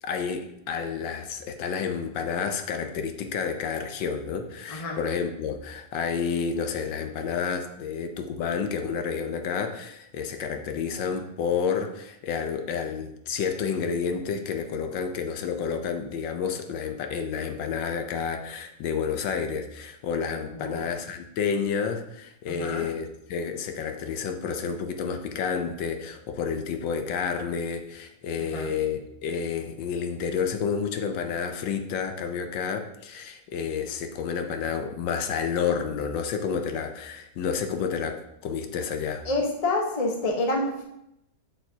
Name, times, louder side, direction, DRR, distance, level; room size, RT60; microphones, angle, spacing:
voice 1, 0.0-39.2, left 6 dB, 75° left, 6 dB, 1.4 m, -30 dB
voice 2, 4.7-5.0 20.5-20.9 22.5-22.9 28.5-28.7 39.2-40.8, left 2 dB, 25° left, 0 dB, 0.9 m, -28 dB
7.8 x 7.0 x 2.8 m, 0.81 s
omnidirectional pair, 2.1 m